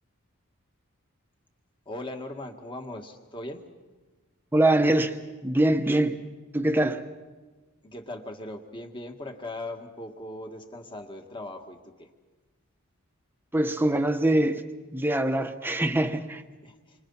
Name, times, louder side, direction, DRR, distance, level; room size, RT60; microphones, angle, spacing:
voice 1, 1.9-3.6 7.8-12.1 16.6-16.8, left 1 dB, 20° left, 1.8 m, -39 dB
voice 2, 4.5-6.2 6.5-7.0 13.5-14.6 14.9-16.4, right 1 dB, 10° right, 1.1 m, -23 dB
28.0 x 25.0 x 5.7 m
head